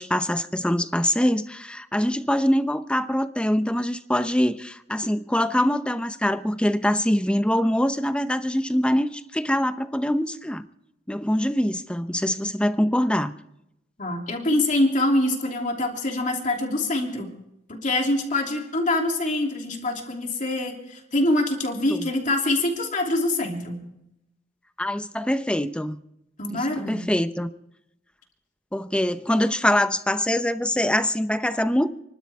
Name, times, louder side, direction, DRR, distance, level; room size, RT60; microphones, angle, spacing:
voice 1, 0.0-10.6 11.1-13.3 21.9-22.1 24.8-26.0 26.5-27.5 28.7-31.9, left 1 dB, 5° left, 0.7 m, -24 dB
voice 2, 14.0-17.3 17.7-23.8 26.4-27.1, left 1 dB, 40° left, 3.0 m, -25 dB
30.0 x 12.0 x 3.6 m
head